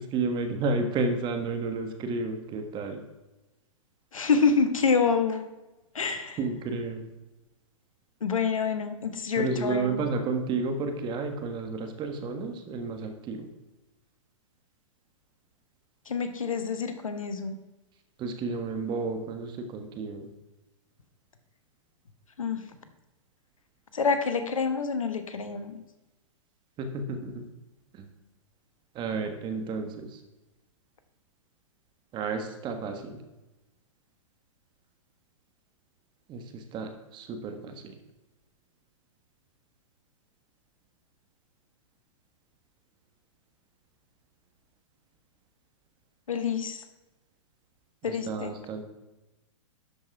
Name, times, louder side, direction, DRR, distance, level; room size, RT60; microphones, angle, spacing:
voice 1, 0.0-3.0 6.4-7.1 9.4-13.5 18.2-20.3 26.8-27.5 27.9-28.1 28.9-30.2 32.1-33.2 36.3-37.9 48.1-48.8, right 3 dB, 30° right, 6 dB, 1.5 m, -31 dB
voice 2, 4.1-5.4 5.9-6.4 8.2-10.1 16.1-17.6 22.4-22.6 23.9-25.8 46.3-46.8 48.0-48.5, left 5 dB, 85° left, 9 dB, 1.2 m, -27 dB
12.0 x 5.3 x 4.7 m, 1.0 s
hypercardioid pair, 120°, 17 cm